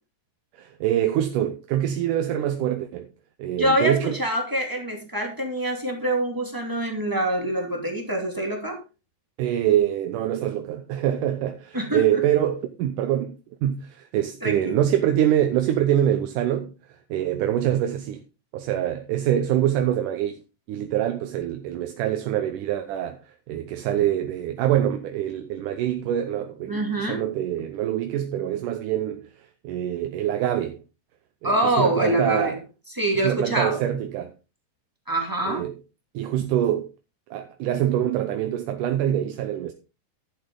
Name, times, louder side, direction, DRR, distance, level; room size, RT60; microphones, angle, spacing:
voice 1, 0.5-3.1 3.4-4.2 9.4-13.4 13.6-18.2 18.5-20.4 20.7-23.2 23.5-29.3 29.6-30.8 31.4-32.6 33.2-34.3 35.5-35.8 36.1-36.9 37.3-39.7, right 11 dB, 75° right, 2.3 m, -25 dB
voice 2, 3.6-8.8 11.7-12.2 14.4-14.8 26.7-27.2 31.4-32.5 33.0-33.8 35.1-35.6, right 1 dB, 5° right, 2.1 m, -25 dB
11.0 x 8.8 x 3.8 m
omnidirectional pair, 3.9 m